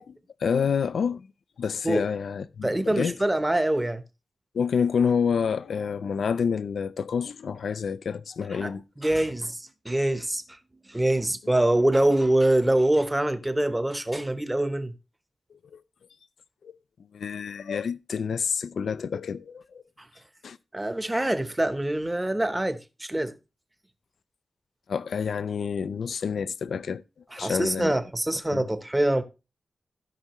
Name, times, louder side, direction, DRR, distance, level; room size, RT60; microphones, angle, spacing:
voice 1, 0.1-1.3 1.6-3.2 4.5-8.8 15.7-15.8 16.6-16.8 17.1-19.8 20.4-20.6 24.9-27.0 27.4-27.9 28.5-28.7, left 6 dB, 80° left, 0.4 m, -28 dB
voice 2, 2.6-4.0 8.6-8.7 9.0-10.4 10.9-14.9 20.7-23.3 27.3-29.2, right 1 dB, 10° right, 1.0 m, -24 dB
16.0 x 5.6 x 3.0 m
wide cardioid pair, 140°, 0 cm